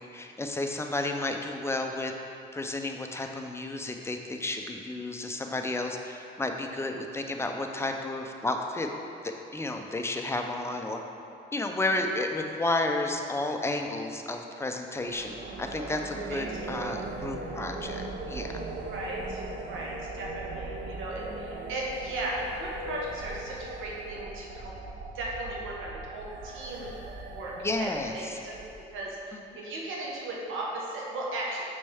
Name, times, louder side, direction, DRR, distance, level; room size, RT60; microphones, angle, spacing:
voice 1, 0.0-2.1 2.5-8.9 9.2-11.0 11.5-18.5 27.6-28.4 29.3-29.4, left 2 dB, 15° left, 3 dB, 0.5 m, -32 dB
sound 1, 15.0-29.1, right 2 dB, 60° right, 0.7 m, -39 dB
voice 2, 18.9-24.7 25.1-26.9 27.3-27.5 27.8-28.5 28.9-29.2 29.5-31.7, right 2 dB, 85° right, -4 dB, 1.2 m, -36 dB
6.6 x 5.4 x 3.5 m, 2.7 s
cardioid pair, 90°, 20 cm